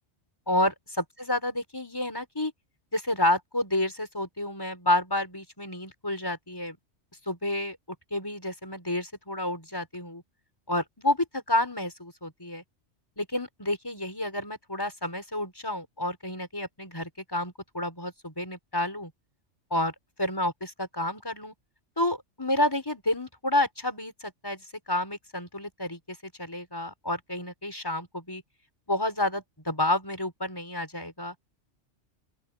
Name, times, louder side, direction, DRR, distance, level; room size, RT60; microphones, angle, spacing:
voice 1, 0.5-2.5 2.9-6.8 7.3-7.8 8.1-10.2 10.7-12.6 13.2-19.1 19.7-21.5 22.0-28.4 28.9-31.3, left 1 dB, 20° left, 5.2 m, -30 dB
open air
omnidirectional pair, 1.2 m